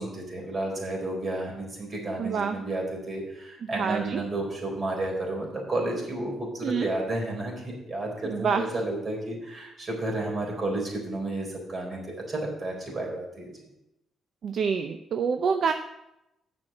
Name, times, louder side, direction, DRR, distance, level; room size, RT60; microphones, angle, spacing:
voice 1, 0.0-13.6, right 2 dB, 35° right, -1 dB, 4.1 m, -32 dB
voice 2, 2.2-2.6 3.8-4.2 6.6-6.9 8.2-8.7 14.4-15.7, right 6 dB, 60° right, 7 dB, 0.6 m, -27 dB
7.7 x 6.2 x 7.4 m, 0.87 s
cardioid pair, 90°, 0 cm